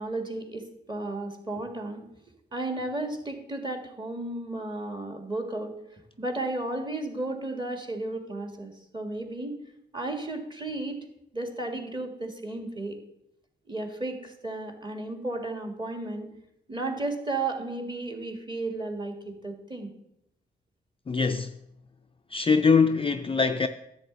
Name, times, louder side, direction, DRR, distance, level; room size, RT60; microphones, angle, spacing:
voice 1, 0.0-2.1 2.5-9.6 9.9-11.0 11.3-13.0 13.7-16.3 16.7-19.9, right 2 dB, 25° right, 1.8 m, -34 dB
voice 2, 21.1-21.6 22.3-23.7, left 5 dB, 25° left, 0.4 m, -23 dB
10.5 x 7.6 x 4.0 m
cardioid pair, 65°, 20 cm